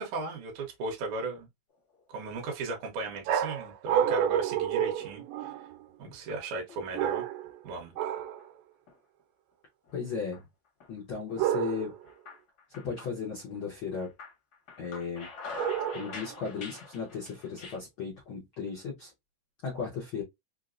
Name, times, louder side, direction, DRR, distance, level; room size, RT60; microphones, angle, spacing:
voice 1, 0.0-1.5 2.1-5.7 6.0-7.2 7.6-7.9, right 3 dB, 70° right, 2.2 m, -37 dB
sound 1, 1.9-2.6 3.1-3.7 4.1-4.6 5.0-5.1 6.0-7.0 7.4-8.5 8.9-9.0 9.9-10.4 10.8-11.0 11.3-13.7 13.9-17.8, left 4 dB, 60° left, 1.0 m, -46 dB
sound 2, 3.3-5.8 6.9-7.6 8.0-8.4 11.4-12.0 15.6-16.3, right 10 dB, 85° right, 2.3 m, -29 dB
voice 2, 9.9-10.4 10.9-11.9 12.7-14.1 14.8-15.3 15.9-19.1 19.6-20.2, left 5 dB, 85° left, 1.1 m, -36 dB
5.4 x 2.1 x 2.4 m
omnidirectional pair, 3.8 m